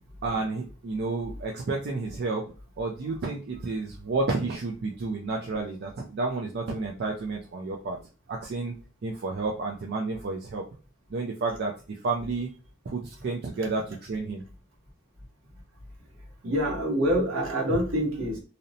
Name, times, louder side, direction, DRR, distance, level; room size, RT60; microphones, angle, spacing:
voice 1, 0.2-8.0 8.3-8.7 9.0-10.7 11.1-12.5 12.9-14.4, right 3 dB, 50° right, 0 dB, 0.4 m, -31 dB
voice 2, 16.4-18.4, equal, 70° right, -1 dB, 0.9 m, -26 dB
2.7 x 2.0 x 2.6 m, 0.35 s
head